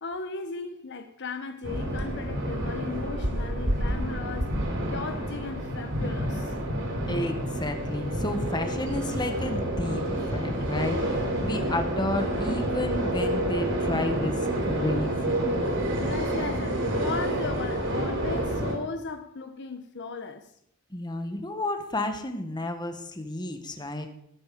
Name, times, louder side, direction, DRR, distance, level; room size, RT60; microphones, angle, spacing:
voice 1, 0.0-4.5 4.9-6.5 16.0-20.5, left 4 dB, 55° left, 0.9 m, -36 dB
sound 1, 1.6-18.8, right 1 dB, 60° right, 3.4 m, -29 dB
voice 2, 7.1-15.5 20.9-24.1, left 1 dB, 20° left, 1.4 m, -31 dB
19.5 x 8.3 x 5.0 m
head